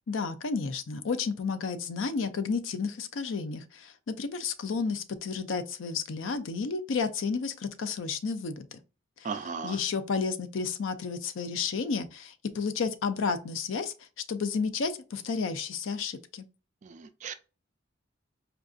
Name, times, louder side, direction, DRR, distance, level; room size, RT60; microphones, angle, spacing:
voice 1, 0.1-8.8 9.6-13.9 14.3-16.5, left 5 dB, 85° left, 0.5 m, -31 dB
voice 2, 9.2-9.8 16.8-17.3, right 5 dB, 40° right, 0.3 m, -36 dB
4.5 x 2.5 x 2.4 m
head